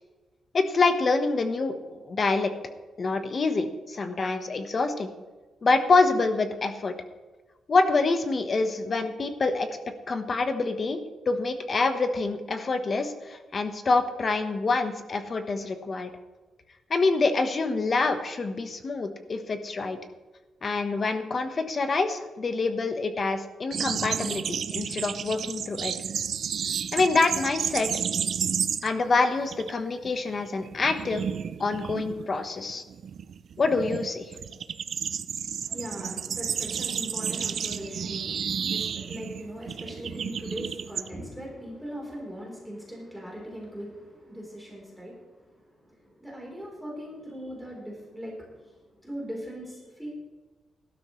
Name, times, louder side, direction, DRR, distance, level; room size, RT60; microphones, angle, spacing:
voice 1, 0.5-2.5 3.0-5.1 5.6-6.9 7.7-9.7 10.1-11.0 11.3-16.1 16.9-20.0 20.6-25.9 26.9-27.9 28.8-31.2 31.6-32.8 33.6-34.2, left 3 dB, 35° left, 8 dB, 1.1 m, -26 dB
sound 1, 23.7-29.1 29.4-29.7 30.0-41.1, right 7 dB, 55° right, 0.6 m, -32 dB
voice 2, 35.6-50.1, equal, ahead, -3 dB, 3.8 m, -40 dB
18.5 x 12.0 x 3.2 m, 1.3 s
wide cardioid pair, 140°, 0 cm